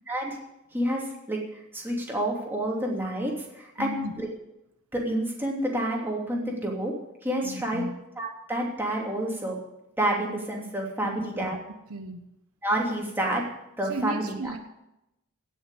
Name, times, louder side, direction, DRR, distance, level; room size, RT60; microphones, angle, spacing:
voice 1, 0.7-4.3 4.9-6.9 7.2-7.8 8.2-9.6 10.0-11.6 12.6-13.4 13.8-14.5, right 1 dB, 10° right, -2 dB, 3.0 m, -29 dB
voice 2, 3.8-4.1 7.4-7.9 11.0-11.5 11.9-12.3 13.9-14.6, right 1 dB, 75° right, 7 dB, 1.1 m, -35 dB
17.0 x 6.6 x 8.2 m, 0.87 s
head